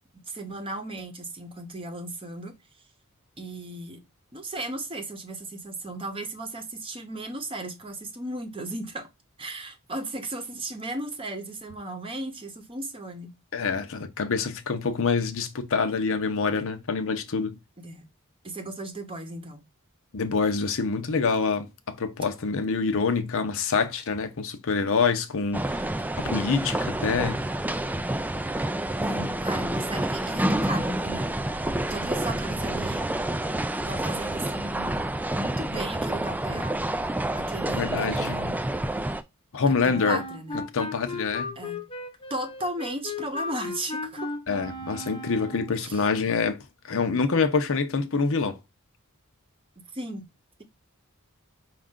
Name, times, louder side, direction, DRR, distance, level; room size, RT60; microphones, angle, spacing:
voice 1, 0.3-2.6 3.4-4.0 4.3-9.1 9.4-13.4 17.8-18.0 18.4-19.6 29.0-33.0 33.8-35.0 35.3-38.8 39.7-40.6 41.6-41.8 42.3-44.3 45.8-46.0 49.8-50.3, right 1 dB, 25° right, 0.9 m, -36 dB
voice 2, 13.5-17.6 20.1-27.4 37.8-38.4 39.5-40.2 40.7-41.5 44.5-48.6, left 4 dB, 65° left, 0.7 m, -26 dB
sound 1, 25.5-39.2, right 1 dB, 10° right, 0.3 m, -28 dB
Wind instrument woodwind instrument, 39.9-45.8, left 2 dB, 25° left, 0.7 m, -36 dB
5.3 x 2.5 x 3.6 m
head